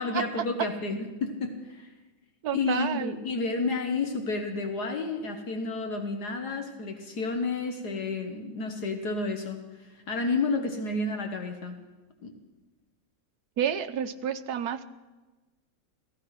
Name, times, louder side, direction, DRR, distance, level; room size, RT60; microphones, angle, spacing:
voice 1, 0.0-1.9 2.5-11.8 12.2-12.3, left 3 dB, 65° left, 5 dB, 1.7 m, -31 dB
voice 2, 2.4-3.1 13.6-14.8, right 9 dB, 65° right, 9 dB, 1.2 m, -30 dB
17.0 x 14.5 x 5.8 m, 1.2 s
omnidirectional pair, 1.9 m